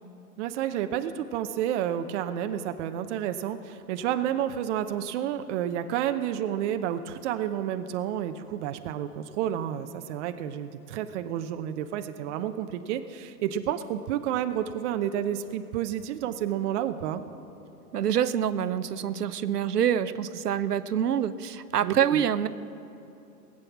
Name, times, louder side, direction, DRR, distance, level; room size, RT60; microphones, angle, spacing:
voice 1, 0.4-17.2 21.8-22.2, right 10 dB, 50° right, 9 dB, 0.7 m, -30 dB
voice 2, 17.9-22.5, right 9 dB, 90° right, 14 dB, 0.7 m, -26 dB
17.5 x 7.7 x 7.2 m, 2.9 s
hypercardioid pair, 110°, 45 cm